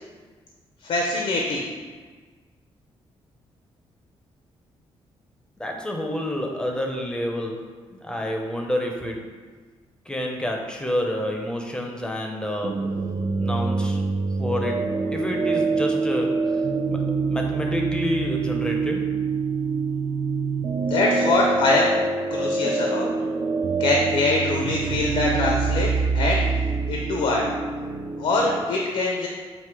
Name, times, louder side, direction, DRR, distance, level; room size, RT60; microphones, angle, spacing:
voice 1, 0.8-1.7 20.9-21.9 22.3-23.1 23.8-25.9 26.1-26.4 26.9-27.4 28.2-29.3, left 2 dB, 70° left, -1 dB, 0.8 m, -23 dB
voice 2, 5.6-7.6 7.9-9.2 10.1-12.8 13.4-14.0 14.4-14.8 15.1-16.6 16.9-17.0 17.3-19.1, left 1 dB, 10° left, 1 dB, 0.7 m, -28 dB
sound 1, 12.6-28.6, right 4 dB, 35° right, 0.4 m, -25 dB
7.6 x 2.7 x 4.8 m, 1.4 s
cardioid pair, 140°, 11 cm